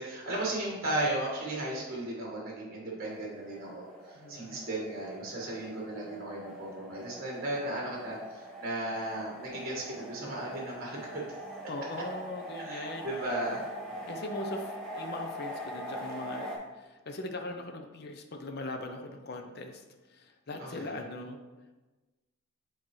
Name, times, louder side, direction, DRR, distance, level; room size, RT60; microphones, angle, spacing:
voice 1, 0.0-11.3 12.6-13.6 13.9-14.1 20.6-21.0, right 1 dB, 45° right, -3 dB, 1.5 m, -35 dB
sound 1, 3.0-16.6, equal, 5° left, 1.0 m, -43 dB
voice 2, 4.1-4.6 11.7-13.0 14.1-19.8 20.1-21.4, left 2 dB, 50° left, 5 dB, 0.5 m, -40 dB
7.5 x 4.4 x 3.1 m, 1.2 s
head